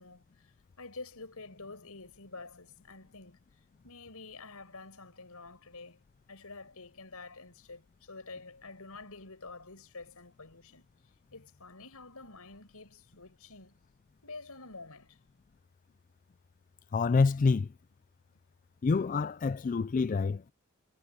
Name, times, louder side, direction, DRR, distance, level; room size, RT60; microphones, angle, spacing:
voice 1, 0.0-3.4 3.8-6.0 6.3-13.8 14.2-15.2, left 3 dB, 80° left, 5.6 m, -48 dB
voice 2, 16.9-17.7 18.8-20.5, left 4 dB, 35° left, 0.3 m, -27 dB
head